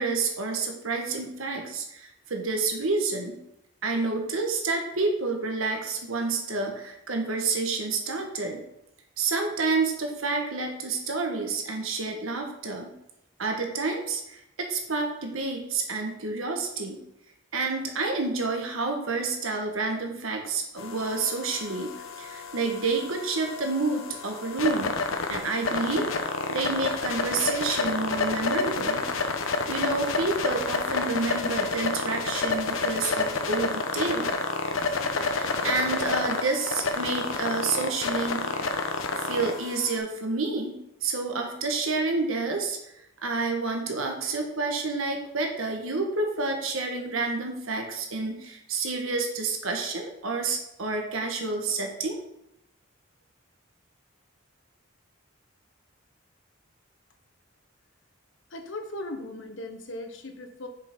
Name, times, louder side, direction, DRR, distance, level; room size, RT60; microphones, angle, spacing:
voice 1, 0.0-3.4 3.8-8.6 9.2-12.9 13.4-17.0 17.5-21.9 22.2-25.0 25.3-26.1 26.5-29.0 29.7-34.3 35.2-38.8 39.1-40.8 41.0-42.8 43.2-52.2, right 3 dB, 90° right, 3 dB, 1.3 m, -29 dB
sound 1, 20.8-40.0, left 3 dB, 85° left, 0.9 m, -29 dB
voice 2, 58.5-60.7, left 1 dB, 65° left, 6 dB, 1.1 m, -38 dB
6.5 x 5.4 x 5.3 m, 0.81 s
head